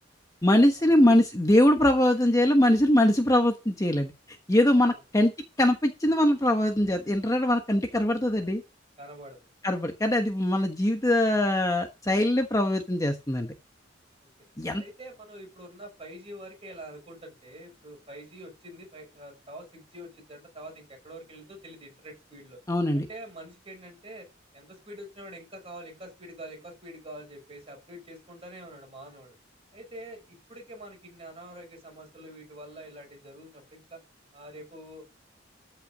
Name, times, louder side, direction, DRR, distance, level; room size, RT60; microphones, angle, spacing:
voice 1, 0.4-4.1 4.5-5.3 5.6-8.6 9.6-13.5 14.6-14.8 22.7-23.1, left 1 dB, 20° left, 1.2 m, -22 dB
voice 2, 9.0-9.4 14.8-22.6 22.9-24.3 24.5-29.3 29.7-34.0 34.3-35.0, right 1 dB, 30° right, 6.1 m, -45 dB
13.5 x 5.9 x 5.1 m
head